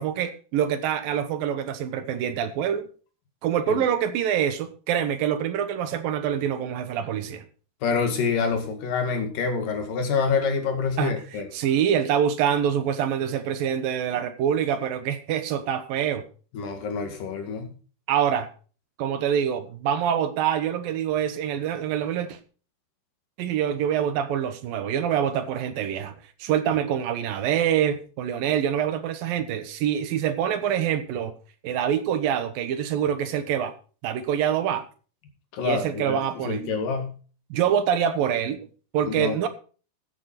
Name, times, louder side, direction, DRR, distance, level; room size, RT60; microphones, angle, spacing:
voice 1, 0.0-2.9 3.4-7.4 11.0-16.2 18.1-18.5 19.0-22.4 23.4-31.3 31.6-33.7 34.0-34.9 35.6-36.8 37.5-38.6 38.9-39.5, right 9 dB, 70° right, 10 dB, 2.7 m, -25 dB
voice 2, 7.8-11.5 16.5-17.7 35.5-37.1 39.0-39.4, left 5 dB, 60° left, 5 dB, 3.5 m, -27 dB
14.5 x 8.8 x 4.2 m, 0.38 s
omnidirectional pair, 4.4 m